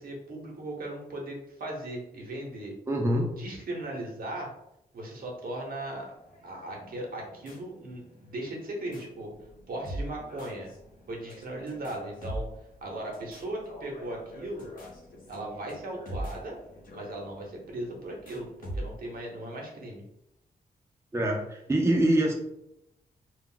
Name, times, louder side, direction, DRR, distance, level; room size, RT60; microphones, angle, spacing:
voice 1, 0.0-2.7 3.4-4.5 4.9-6.1 6.4-9.3 9.7-10.7 11.1-12.5 12.8-14.7 15.3-16.6 16.9-20.0, right 1 dB, 65° right, -1 dB, 0.8 m, -37 dB
voice 2, 2.9-3.3 21.1-22.3, right 1 dB, 15° right, 0 dB, 0.5 m, -24 dB
sound 1, 6.2-19.2, right 1 dB, 60° left, 0.8 m, -43 dB
2.3 x 2.0 x 3.7 m, 0.82 s
cardioid pair, 90°, 16 cm